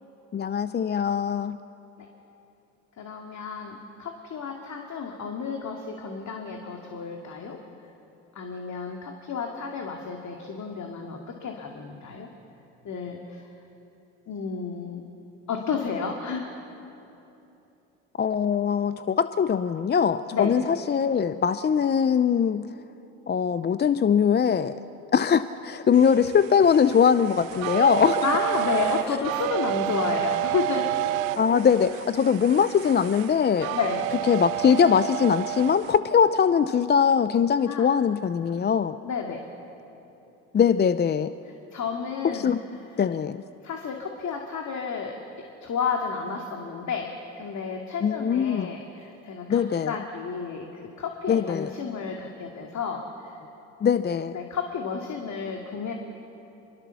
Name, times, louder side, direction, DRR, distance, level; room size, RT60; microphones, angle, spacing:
voice 1, 0.3-1.6 18.2-22.7 23.3-24.8 25.1-28.3 31.4-33.7 34.3-39.0 40.5-41.3 42.2-42.6 43.0-43.4 48.0-48.7 49.5-50.0 51.3-51.8 53.8-54.4, left 7 dB, 25° left, 13 dB, 0.6 m, -22 dB
voice 2, 3.0-7.6 8.3-12.3 12.8-13.4 14.3-15.0 15.5-16.5 20.3-20.5 28.2-30.9 33.7-34.1 37.7-37.9 39.0-39.4 41.7-42.5 43.6-45.2 45.6-47.1 47.4-53.3 54.3-55.9, left 5 dB, 45° left, 2 dB, 2.4 m, -31 dB
sound 1, 25.9-36.0, right 15 dB, 85° right, 0.8 m, -30 dB
25.0 x 22.0 x 7.0 m, 2.9 s
hypercardioid pair, 75°, 39 cm